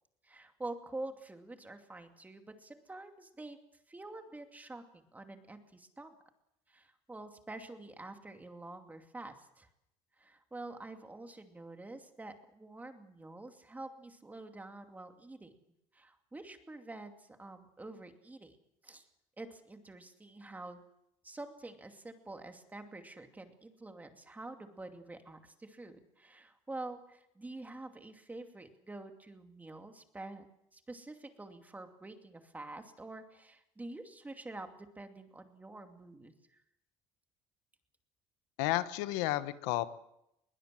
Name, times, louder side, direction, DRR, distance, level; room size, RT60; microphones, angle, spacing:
voice 1, 0.2-3.6 3.9-6.1 6.7-9.7 10.2-15.5 15.9-18.6 18.8-19.1 19.4-20.8 21.2-30.5 30.7-36.6, right 2 dB, 15° right, 6 dB, 2.6 m, -47 dB
voice 2, 38.6-39.9, left 16 dB, 85° left, 13 dB, 1.2 m, -32 dB
21.5 x 19.0 x 7.7 m, 0.83 s
cardioid pair, 110°, 13 cm